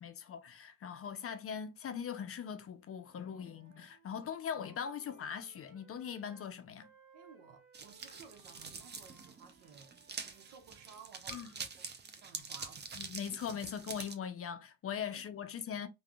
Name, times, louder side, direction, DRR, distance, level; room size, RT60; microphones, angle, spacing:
voice 1, 0.0-6.9 11.3-11.5 13.0-15.9, left 8 dB, 35° left, 0.5 m, -41 dB
Wind instrument woodwind instrument, 2.9-6.5 6.8-11.0, right 4 dB, 45° right, 1.4 m, -64 dB
voice 2, 7.1-11.9 12.2-12.9 15.1-15.3 15.5-15.8, right 6 dB, 70° right, 0.8 m, -57 dB
sound 1, 7.7-14.1, right 5 dB, 25° right, 0.6 m, -46 dB
3.5 x 2.2 x 2.2 m
hypercardioid pair, 50°, 41 cm